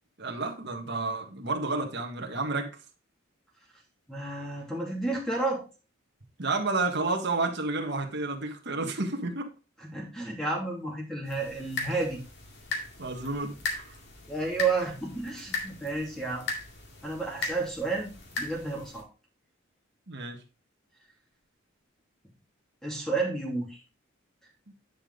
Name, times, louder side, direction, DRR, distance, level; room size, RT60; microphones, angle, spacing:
voice 1, 0.2-2.7 6.4-9.5 13.0-13.9 20.1-20.4, right 3 dB, 55° right, 3 dB, 1.7 m, -31 dB
voice 2, 4.1-5.6 9.8-12.2 14.3-16.4 17.0-18.1 18.4-19.1 22.8-23.8, right 3 dB, ahead, -2 dB, 2.7 m, -31 dB
sound 1, 11.3-19.0, left 3 dB, 55° left, 2.3 m, -38 dB
10.0 x 5.2 x 3.9 m, 0.32 s
head